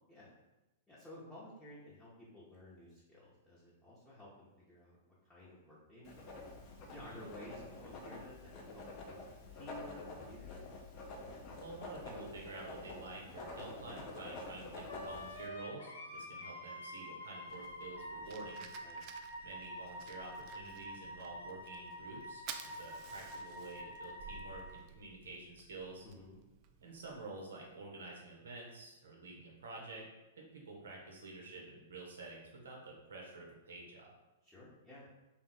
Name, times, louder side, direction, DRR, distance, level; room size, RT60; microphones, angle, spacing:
voice 1, 0.9-5.0 5.2-6.4 6.9-10.7 18.8-19.0 26.0-26.4 34.4-35.1, left 1 dB, 5° left, -10 dB, 1.0 m, -54 dB
Writing, 6.0-15.5, left 2 dB, 35° left, 0.7 m, -48 dB
voice 2, 11.6-18.7 19.4-22.4 22.7-26.1 26.8-30.1 30.4-34.1, right 3 dB, 70° right, -2 dB, 1.0 m, -49 dB
Wind instrument woodwind instrument, 14.9-24.7, left 1 dB, 65° left, 0.8 m, -47 dB
Fire, 17.5-27.2, right 7 dB, 40° right, 0.3 m, -54 dB
3.5 x 2.3 x 4.2 m, 1.0 s
figure-of-eight pair, 105°, 0 cm